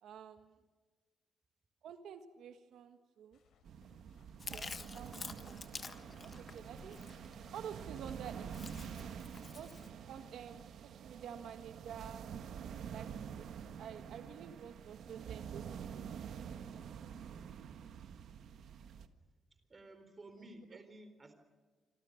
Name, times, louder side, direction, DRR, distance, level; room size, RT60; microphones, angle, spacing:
voice 1, 0.0-0.5 1.8-3.4 4.5-5.6 6.2-7.0 7.5-8.5 9.5-9.7 10.0-12.3 12.7-13.5 13.8-17.5, right 8 dB, 85° right, 8 dB, 1.6 m, -50 dB
sound 1, 3.3-9.0, left 5 dB, 85° left, 5.6 m, -69 dB
sound 2, 3.6-19.1, right 7 dB, 70° right, 1.5 m, -47 dB
Chewing mastication, 4.4-9.9, left 4 dB, 30° left, 1.4 m, -49 dB
voice 2, 19.5-21.3, right 2 dB, 25° right, 8 dB, 4.1 m, -54 dB
27.5 x 26.0 x 6.6 m, 1.3 s
wide cardioid pair, 155°, 0 cm